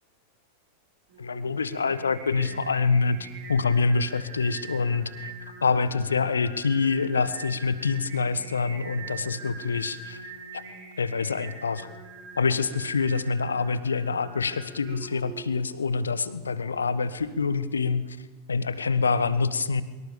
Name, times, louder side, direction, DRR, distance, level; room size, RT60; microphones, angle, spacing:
Singing, 1.1-17.4, right 4 dB, 55° right, 7.5 m, -44 dB
voice 1, 1.2-5.3 5.6-10.6 11.0-11.9 12.4-19.8, left 4 dB, 75° left, 15 dB, 1.4 m, -26 dB
24.5 x 23.0 x 6.9 m, 1.3 s
figure-of-eight pair, 90°, 0 cm